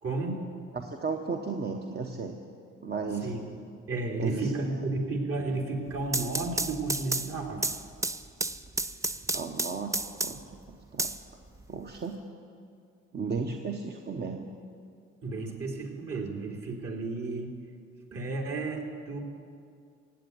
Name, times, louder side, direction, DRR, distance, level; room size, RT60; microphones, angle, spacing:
voice 1, 0.0-0.4 3.2-3.4 3.9-7.7 15.2-17.5 18.1-19.2, right 3 dB, 50° right, 0 dB, 2.9 m, -32 dB
voice 2, 0.7-2.4 2.8-3.3 4.2-4.7 9.3-11.1 11.7-12.2 13.1-14.5, right 4 dB, 35° right, 3 dB, 1.1 m, -34 dB
sound 1, 5.9-10.5 11.0-12.0, right 2 dB, 10° right, 0.4 m, -32 dB
16.5 x 8.0 x 9.4 m, 2.3 s
cardioid pair, 90°, 30 cm